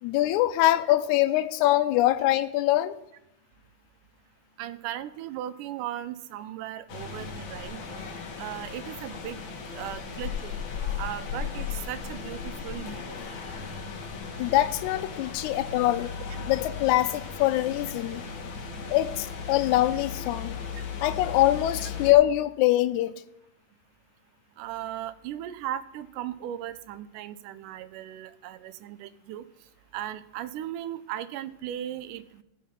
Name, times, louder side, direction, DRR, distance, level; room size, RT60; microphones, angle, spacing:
voice 1, 0.0-3.0 14.4-16.1 16.5-18.2 18.9-20.6 21.0-23.1, left 15 dB, 80° left, 10 dB, 1.8 m, -23 dB
voice 2, 4.6-8.1 8.4-9.4 9.7-10.6 11.0-13.3 24.6-29.4 29.9-32.4, right 12 dB, 85° right, 14 dB, 2.1 m, -37 dB
sound 1, 6.9-22.1, left 6 dB, 55° left, 1.5 m, -36 dB
16.0 x 5.7 x 5.5 m, 0.83 s
omnidirectional pair, 3.7 m